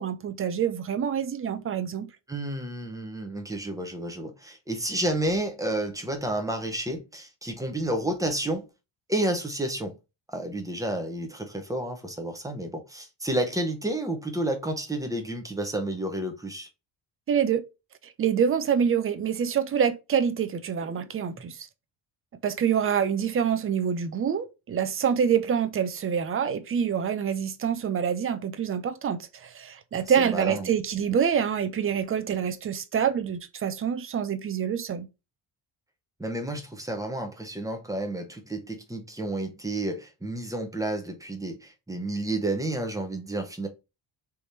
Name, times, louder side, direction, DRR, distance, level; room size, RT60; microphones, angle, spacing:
voice 1, 0.0-2.1 17.3-17.6 18.2-21.6 22.4-35.1, right 7 dB, 30° right, 0.5 m, -26 dB
voice 2, 2.3-8.7 9.1-10.0 10.3-16.7 30.2-30.7 36.2-43.7, right 1 dB, 10° right, 0.9 m, -30 dB
3.5 x 3.2 x 4.1 m
cardioid pair, 140°, 44 cm